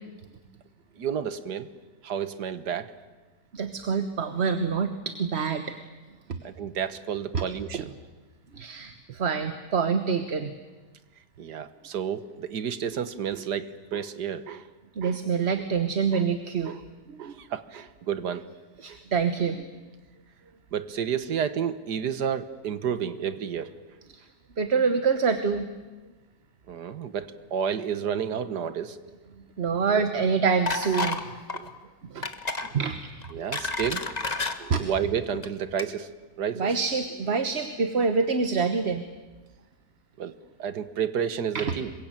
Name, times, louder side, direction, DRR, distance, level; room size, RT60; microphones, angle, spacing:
voice 1, 1.0-1.7 2.0-2.9 6.4-7.9 11.4-14.7 15.0-15.2 15.6-15.7 16.1-16.2 16.7-16.8 17.2-18.4 18.9-19.0 20.7-23.8 26.7-29.0 29.9-30.1 31.5-31.7 32.2-32.3 32.6-32.7 33.3-34.1 34.6-36.1 36.4-36.7 40.2-41.9, right 8 dB, 80° right, 12 dB, 1.8 m, -31 dB
voice 2, 3.5-5.8 6.3-6.4 7.3-7.4 7.7-7.8 8.5-10.5 14.9-16.8 17.1-17.3 18.8-19.7 24.1-24.2 24.6-25.7 29.6-31.4 32.1-32.3 32.7-33.1 34.7-34.8 36.6-39.0 41.5-41.7, right 5 dB, 45° right, 9 dB, 1.4 m, -26 dB
sound 1, 30.7-31.2 31.5-31.7 32.2-32.7 33.2-34.6 35.3-35.5 35.8-35.9, left 3 dB, 25° left, 1.5 m, -30 dB
27.0 x 23.0 x 9.0 m, 1.3 s
omnidirectional pair, 1.7 m